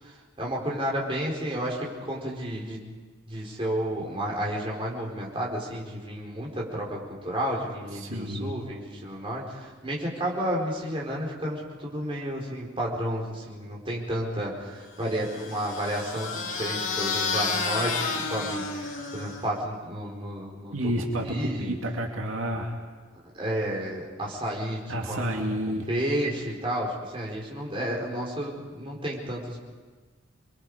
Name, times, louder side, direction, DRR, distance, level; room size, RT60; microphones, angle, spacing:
voice 1, 0.0-2.8 3.3-20.9 21.2-21.7 23.3-29.6, equal, 25° right, -3 dB, 4.7 m, -31 dB
voice 2, 7.9-8.5 20.7-22.7 24.9-25.9, equal, 85° right, 1 dB, 2.3 m, -30 dB
sound 1, 15.1-19.6, left 4 dB, 80° left, 2.9 m, -31 dB
29.0 x 22.5 x 5.1 m, 1.4 s
head